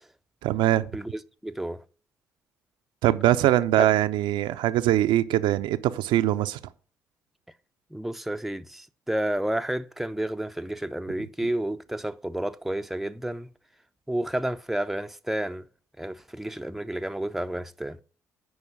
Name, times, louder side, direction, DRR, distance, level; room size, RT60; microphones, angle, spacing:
voice 1, 0.4-0.9 3.0-6.6, right 13 dB, 70° right, 0.5 m, -22 dB
voice 2, 0.9-1.8 7.9-13.5 14.1-15.7 16.0-18.0, right 1 dB, ahead, 0.5 m, -31 dB
9.5 x 4.9 x 5.3 m
hypercardioid pair, 45°, 9 cm